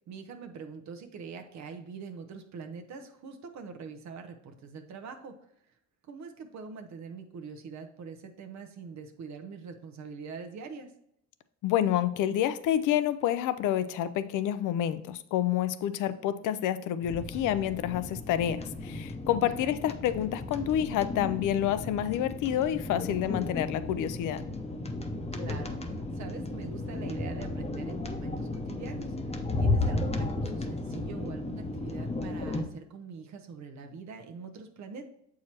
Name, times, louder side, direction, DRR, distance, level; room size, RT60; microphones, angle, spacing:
voice 1, 0.1-5.3 6.1-10.9 19.4-19.6 25.3-35.0, right 5 dB, 65° right, 5 dB, 0.8 m, -43 dB
voice 2, 11.6-24.4, left 11 dB, 85° left, 14 dB, 0.5 m, -28 dB
sound 1, 17.0-32.6, left 2 dB, 20° left, 0.7 m, -34 dB
7.2 x 4.8 x 2.9 m, 0.77 s
cardioid pair, 90°, 30 cm